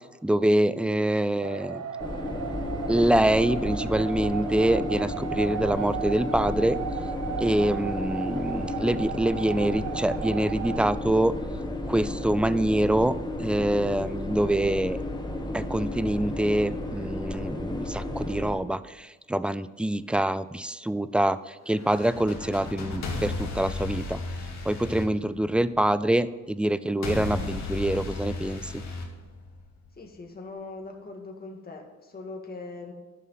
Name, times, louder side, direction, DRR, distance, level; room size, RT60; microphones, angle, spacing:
voice 1, 0.2-1.8 2.9-6.8 7.4-11.3 11.8-15.0 15.5-24.2 24.6-28.8, right 1 dB, 5° right, 15 dB, 0.4 m, -25 dB
sound 1, 1.4-10.9, right 7 dB, 55° right, 1.0 m, -35 dB
sound 2, 2.0-18.5, left 2 dB, 15° left, 1.4 m, -33 dB
sound 3, 21.7-25.9 27.0-29.9, left 3 dB, 65° left, 2.2 m, -34 dB
voice 2, 30.0-32.9, left 3 dB, 30° left, 2 dB, 1.9 m, -41 dB
11.0 x 6.2 x 5.6 m, 1.2 s
cardioid pair, 90°, 30 cm